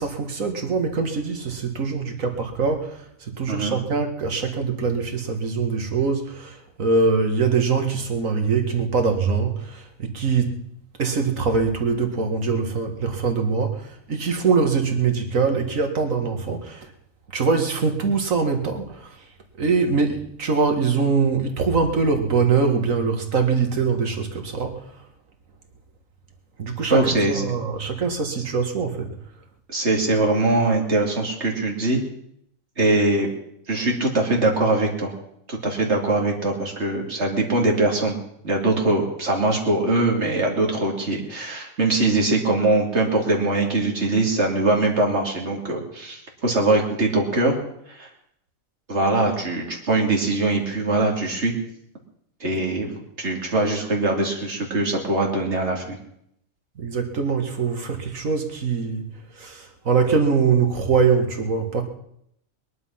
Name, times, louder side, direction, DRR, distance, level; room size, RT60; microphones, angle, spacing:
voice 1, 0.0-10.6 11.0-16.9 17.3-19.2 19.6-24.8 26.6-29.1 56.8-61.8, right 5 dB, 80° right, 5 dB, 2.2 m, -23 dB
voice 2, 3.5-3.8 26.9-27.4 29.7-32.0 32.8-33.3 33.7-35.1 35.5-38.2 38.4-47.6 47.9-48.1 48.9-51.5 52.4-56.0, right 2 dB, 55° right, 0 dB, 3.0 m, -22 dB
20.5 x 11.0 x 5.8 m, 0.73 s
omnidirectional pair, 1.4 m